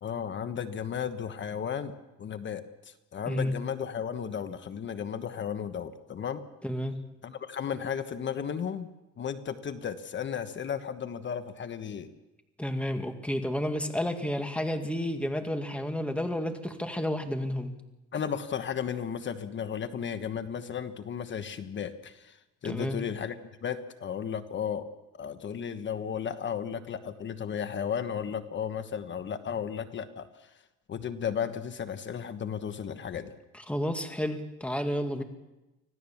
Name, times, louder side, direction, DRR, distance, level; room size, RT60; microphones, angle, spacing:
voice 1, 0.0-1.9 2.2-6.4 7.2-8.9 9.2-12.1 18.1-22.4 22.6-23.4 23.6-24.9 25.2-30.5 30.9-33.3, left 7 dB, 40° left, 10 dB, 1.2 m, -34 dB
voice 2, 6.6-7.0 12.6-17.7 22.7-23.0 33.5-35.2, equal, 5° left, 6 dB, 2.1 m, -31 dB
25.5 x 16.5 x 7.2 m, 1.0 s
cardioid pair, 120°, 29 cm